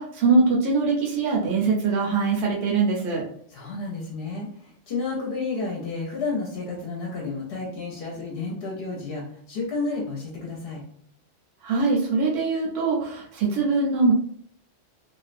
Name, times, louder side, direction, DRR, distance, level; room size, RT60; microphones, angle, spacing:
voice 1, 0.0-3.2 11.6-14.1, right 4 dB, 70° right, -2 dB, 0.8 m, -22 dB
voice 2, 3.5-10.8, left 3 dB, 60° left, -2 dB, 0.8 m, -31 dB
2.4 x 2.1 x 2.4 m, 0.63 s
omnidirectional pair, 1.2 m